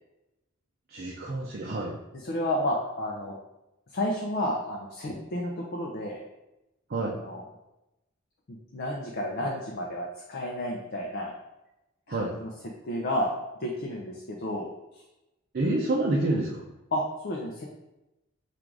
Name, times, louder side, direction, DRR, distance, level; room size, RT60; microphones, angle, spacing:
voice 1, 0.9-1.9 6.9-7.1 12.1-12.3 15.5-16.6, right 2 dB, 45° right, -2 dB, 0.5 m, -28 dB
voice 2, 2.1-3.4 3.9-6.2 6.9-7.4 8.7-11.3 12.1-12.5 12.9-13.3 13.6-15.0 16.9-17.7, left 1 dB, 50° left, -1 dB, 0.5 m, -31 dB
3.7 x 2.5 x 4.6 m, 0.95 s
head